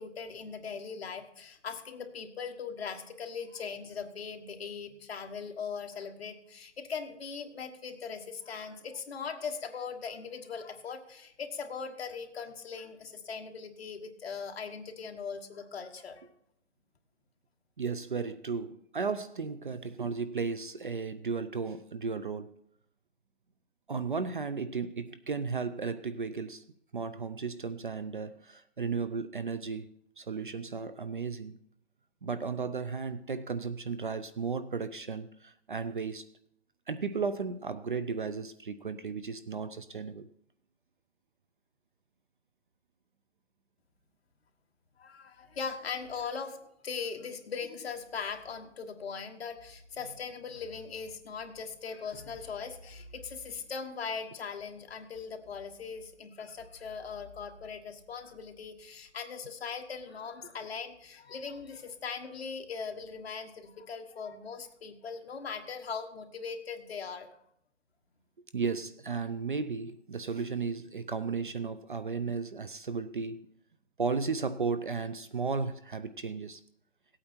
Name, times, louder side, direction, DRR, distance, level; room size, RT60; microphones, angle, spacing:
voice 1, 0.0-16.3 45.0-46.6 46.8-67.3, left 5 dB, 55° left, 1.4 m, -40 dB
voice 2, 17.8-22.5 23.9-26.6 26.9-29.9 30.2-31.6 32.2-36.3 36.9-40.3 68.5-73.5 74.0-76.6, right 5 dB, 45° right, 0.5 m, -34 dB
16.5 x 8.7 x 4.4 m
hypercardioid pair, 175°, 38 cm